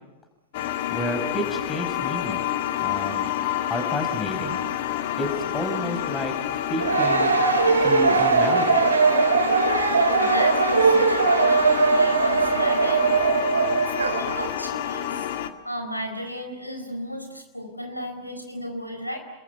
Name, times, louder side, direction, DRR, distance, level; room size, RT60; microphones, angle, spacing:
sound 1, 0.5-15.5, left 11 dB, 50° left, 1.7 m, -29 dB
voice 1, 0.9-2.5 2.8-3.3 3.7-4.6 5.2-6.3 6.7-7.3 7.8-8.8, left 1 dB, 15° left, 6 dB, 5.2 m, -30 dB
sound 2, 6.8-14.5, right 4 dB, 75° right, 2.4 m, -20 dB
voice 2, 9.7-13.0 14.0-15.3 15.6-19.2, equal, 90° left, 5 dB, 4.4 m, -34 dB
28.5 x 22.0 x 8.0 m, 1.1 s
figure-of-eight pair, 90°, 0 cm